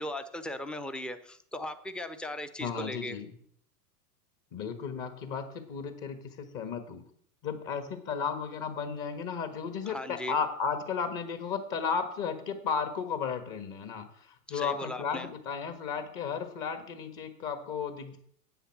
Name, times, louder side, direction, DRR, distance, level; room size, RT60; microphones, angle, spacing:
voice 1, 0.0-3.2 9.9-10.4 14.5-15.3, left 1 dB, ahead, 12 dB, 0.4 m, -38 dB
voice 2, 2.6-3.3 4.5-7.0 7.4-18.2, left 6 dB, 40° left, 7 dB, 1.6 m, -34 dB
10.0 x 8.2 x 6.0 m, 0.66 s
hypercardioid pair, 100°, 48 cm